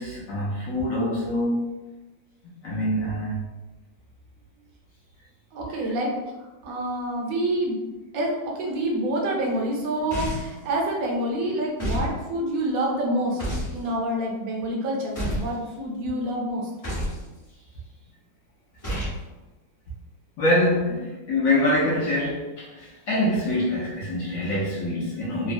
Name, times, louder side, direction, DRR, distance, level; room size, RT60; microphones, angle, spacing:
voice 1, 0.0-1.7 2.6-3.5 20.4-25.5, left 1 dB, 65° left, -6 dB, 0.9 m, -25 dB
voice 2, 5.5-6.2 6.6-7.8 8.1-8.3 8.6-13.4 13.7-16.6, right 1 dB, 65° right, -1 dB, 1.0 m, -27 dB
sound 1, 10.1-10.6 11.8-12.1 13.4-13.8 15.1-15.5 16.8-17.2 18.8-19.2, equal, 35° left, 0.6 m, -29 dB
3.1 x 2.0 x 2.5 m, 1.1 s
omnidirectional pair, 1.9 m